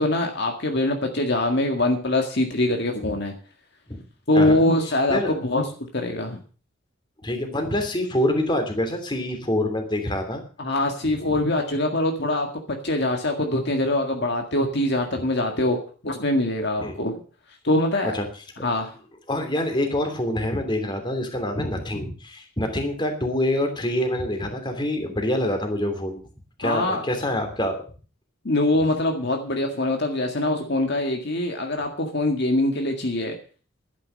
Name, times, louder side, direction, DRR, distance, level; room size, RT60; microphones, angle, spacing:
voice 1, 0.0-3.3 4.3-5.6 5.9-6.4 10.6-12.5 12.8-15.8 16.0-17.2 17.6-18.2 18.6-18.9 26.6-27.1 28.4-33.4, left 1 dB, 55° left, 3 dB, 1.9 m, -23 dB
voice 2, 7.2-10.4 11.3-11.4 15.1-15.2 16.8-17.0 18.0-18.2 18.6-18.7 19.3-26.2 26.6-27.8, left 1 dB, 20° left, 5 dB, 2.9 m, -26 dB
12.0 x 10.5 x 6.5 m, 0.39 s
head